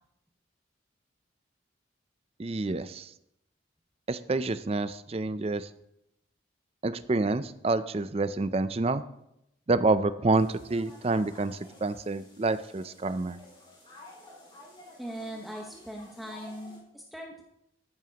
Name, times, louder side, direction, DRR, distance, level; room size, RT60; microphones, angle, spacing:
voice 1, 2.4-3.1 4.1-5.7 6.8-9.0 9.7-13.4, right 3 dB, 30° right, 13 dB, 0.5 m, -28 dB
sound 1, 10.3-16.8, left 1 dB, 25° left, 4.8 m, -51 dB
voice 2, 15.0-17.4, right 1 dB, ahead, -2 dB, 1.1 m, -40 dB
14.0 x 11.0 x 2.9 m, 0.81 s
head